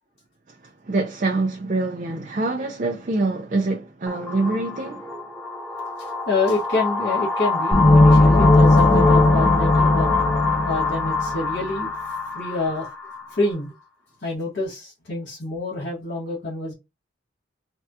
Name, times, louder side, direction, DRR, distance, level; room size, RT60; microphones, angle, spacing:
voice 1, 0.8-5.1, right 2 dB, 40° right, 0.4 m, -25 dB
sound 1, 4.1-13.5, left 4 dB, 10° left, 0.9 m, -26 dB
voice 2, 6.0-10.1 10.6-11.9 12.3-12.9 13.3-13.7 14.2-16.7, left 2 dB, 70° left, 1.4 m, -27 dB
sound 2, 7.7-11.5, left 2 dB, 30° left, 0.4 m, -16 dB
3.4 x 2.3 x 2.7 m
head